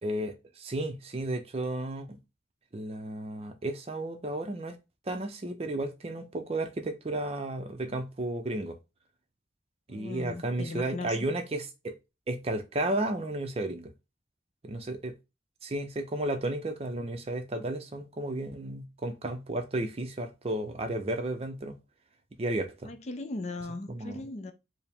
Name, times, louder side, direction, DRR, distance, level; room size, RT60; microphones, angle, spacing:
voice 1, 0.0-2.2 2.7-4.8 5.1-8.8 9.9-11.9 12.3-13.9 14.6-15.1 15.6-21.7 22.4-22.9 23.9-24.2, right 1 dB, 35° right, 0.5 m, -33 dB
voice 2, 9.9-11.2 22.9-24.5, left 2 dB, 40° left, 0.5 m, -38 dB
4.7 x 2.1 x 3.5 m
head